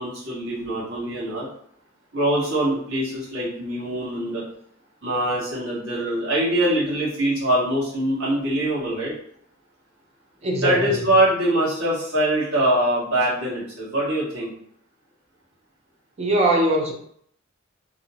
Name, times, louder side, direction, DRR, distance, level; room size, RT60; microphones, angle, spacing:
voice 1, 0.0-1.5 2.1-4.4 5.0-9.1 10.6-14.5, right 1 dB, 80° right, -7 dB, 1.2 m, -23 dB
voice 2, 10.4-11.1 16.2-16.9, right 1 dB, 30° right, 1 dB, 0.3 m, -21 dB
2.6 x 2.1 x 2.7 m, 0.66 s
head